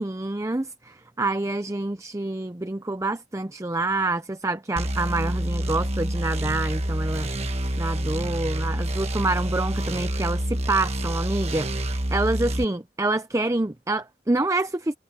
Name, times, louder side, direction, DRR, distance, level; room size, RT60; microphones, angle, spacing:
voice 1, 0.0-7.3 7.8-14.9, right 2 dB, 15° right, 0.6 m, -27 dB
sound 1, 4.8-12.6, right 1 dB, 35° right, 1.4 m, -27 dB
head